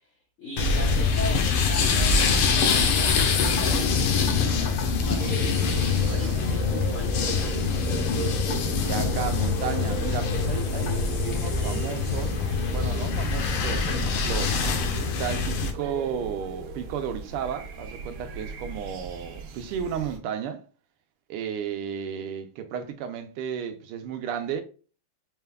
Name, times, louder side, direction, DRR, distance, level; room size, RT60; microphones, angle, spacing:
voice 1, 0.4-8.1, left 1 dB, 50° left, 1.0 m, -38 dB
sound 1, 0.6-15.7, left 5 dB, 85° left, 1.7 m, -24 dB
sound 2, 5.2-20.2, right 5 dB, 70° right, 1.4 m, -37 dB
voice 2, 8.9-12.3 12.7-14.5 15.0-20.6 21.3-24.6, right 8 dB, 90° right, 1.5 m, -33 dB
5.4 x 3.4 x 2.2 m
omnidirectional pair, 2.4 m